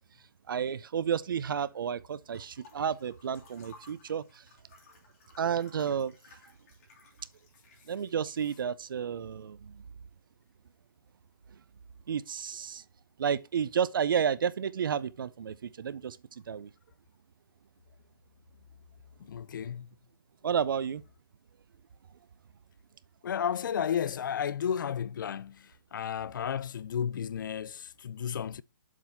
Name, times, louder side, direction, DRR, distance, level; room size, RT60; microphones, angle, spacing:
voice 1, 0.5-4.4 5.4-6.4 7.9-9.8 11.5-11.6 12.1-12.8 13.2-16.7 20.4-21.0, right 7 dB, 70° right, 0.6 m, -31 dB
sound 1, 2.3-8.4, left 3 dB, 40° left, 3.0 m, -58 dB
voice 2, 19.2-19.9 23.2-28.6, left 8 dB, 65° left, 0.4 m, -33 dB
7.3 x 4.1 x 4.4 m
hypercardioid pair, 165°, 12 cm